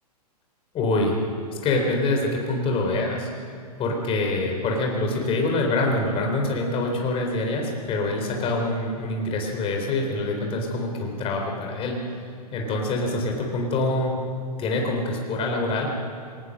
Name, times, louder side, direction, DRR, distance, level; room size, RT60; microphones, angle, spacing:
voice 1, 0.7-1.2 1.6-3.3 3.8-12.0 12.5-14.2 14.6-15.9, left 2 dB, 25° left, 1 dB, 3.9 m, -25 dB
22.0 x 19.0 x 6.4 m, 2.3 s
hypercardioid pair, 125°, 21 cm